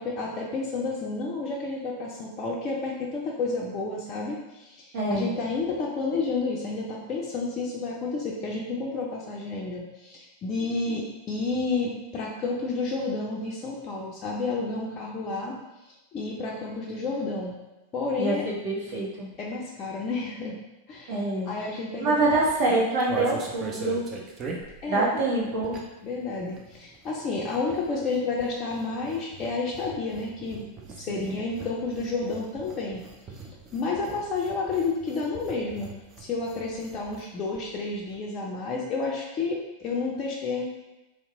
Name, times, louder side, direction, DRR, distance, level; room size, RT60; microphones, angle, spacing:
voice 1, 0.0-15.6 15.8-17.6 17.9-18.4 19.4-20.6 20.9-22.2 24.8-25.7 26.0-30.7 31.0-33.0 33.7-35.9 36.2-40.7, left 3 dB, 30° left, -3 dB, 0.4 m, -30 dB
voice 2, 4.9-5.3 18.2-18.3 18.6-19.3 21.1-21.5 22.0-24.0 24.9-25.8 31.2-31.4, right 2 dB, 45° right, -5 dB, 1.0 m, -25 dB
sound 1, 22.4-26.1 26.4-37.3 37.6-37.7 37.9-38.2, right 4 dB, 25° right, 0.4 m, -41 dB
2.8 x 2.1 x 3.5 m, 1.0 s
figure-of-eight pair, 90°, 0 cm